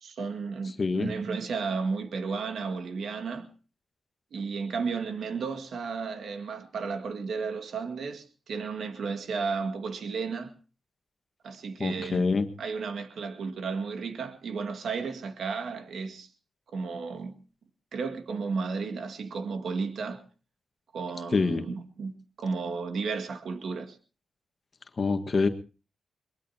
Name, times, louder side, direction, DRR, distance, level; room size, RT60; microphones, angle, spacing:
voice 1, 0.0-3.5 4.3-10.5 11.4-12.2 12.6-16.3 16.7-17.3 17.9-20.2 20.9-24.0, right 5 dB, 80° right, 2.1 m, -33 dB
voice 2, 0.8-1.1 11.8-12.5 21.3-21.6 25.0-25.5, left 4 dB, 45° left, 1.6 m, -25 dB
22.5 x 21.5 x 2.9 m
cardioid pair, 80°, 0 cm